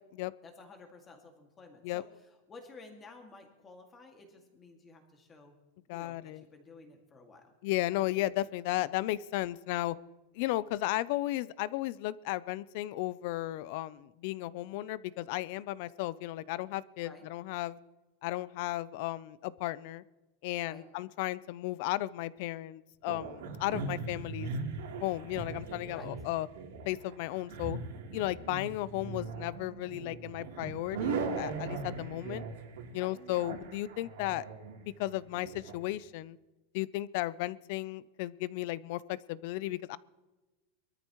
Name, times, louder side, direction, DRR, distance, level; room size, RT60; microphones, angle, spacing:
voice 1, 0.4-5.6 5.9-7.5 17.0-17.3 20.6-20.9 25.9-26.1 32.9-33.2, left 3 dB, 15° left, 3 dB, 2.0 m, -53 dB
voice 2, 5.9-6.4 7.6-10.0 10.3-17.8 18.2-20.0 20.4-24.6 25.0-26.5 26.9-27.8 28.1-32.4 32.9-34.4 34.8-36.4 36.7-40.0, left 16 dB, 50° left, 20 dB, 0.4 m, -34 dB
sound 1, 23.1-35.7, right 4 dB, 90° right, 3.2 m, -40 dB
22.5 x 13.5 x 3.1 m, 1.1 s
supercardioid pair, 165°, 0 cm